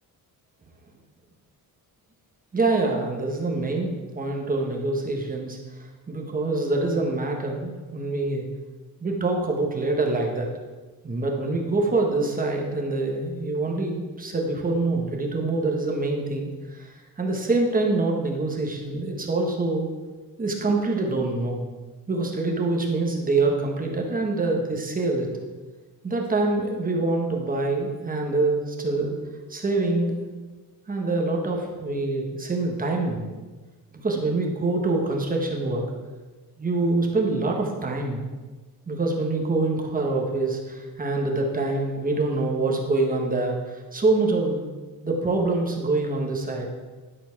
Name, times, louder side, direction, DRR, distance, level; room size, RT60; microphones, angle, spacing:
voice 1, 2.5-8.4 9.0-10.5 11.0-19.9 20.4-21.7 22.1-25.3 26.0-29.2 29.5-30.2 30.9-33.3 33.9-35.9 36.6-38.2 38.9-44.6 45.0-46.7, right 2 dB, 20° right, 0 dB, 1.4 m, -25 dB
11.0 x 4.5 x 5.9 m, 1.3 s
cardioid pair, 155°, 37 cm